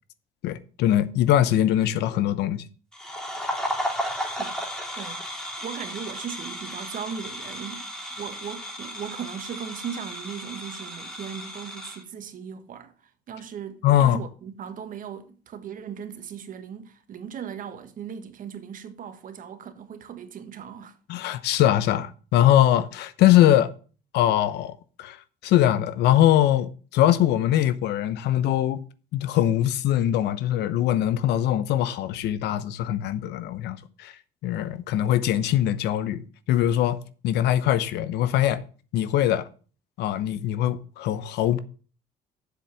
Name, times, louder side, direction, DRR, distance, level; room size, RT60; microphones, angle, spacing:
voice 1, 0.4-2.7 13.8-14.2 21.1-23.7 24.1-28.8 29.1-34.1 34.4-38.6 38.9-39.5 40.0-41.6, left 12 dB, 80° left, 0.9 m, -22 dB
sound 1, 2.9-12.0, equal, 5° left, 3.1 m, -34 dB
voice 2, 5.6-20.9, right 7 dB, 55° right, 1.5 m, -38 dB
7.5 x 7.4 x 7.0 m
cardioid pair, 110°, 17 cm